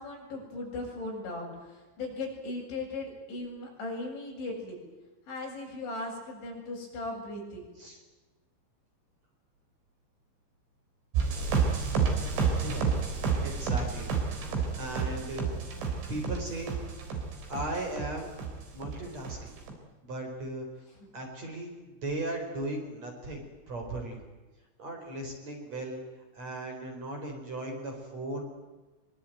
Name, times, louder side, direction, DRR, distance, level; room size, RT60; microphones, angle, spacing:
voice 1, 0.0-4.8 5.3-7.7 20.9-21.1, left 2 dB, 65° left, -1 dB, 10.0 m, -38 dB
sound 1, 11.1-18.1 18.4-18.9 19.2-19.7, right 5 dB, 70° right, 6.6 m, -30 dB
voice 2, 12.5-12.9 13.4-14.2 14.5-15.5 15.8-16.8 17.5-18.3 18.7-19.5 20.0-20.7 21.1-21.7 22.0-24.2 24.8-26.0 26.4-28.4, right 1 dB, 35° right, 3 dB, 5.3 m, -37 dB
24.5 x 23.5 x 9.3 m, 1.2 s
omnidirectional pair, 5.6 m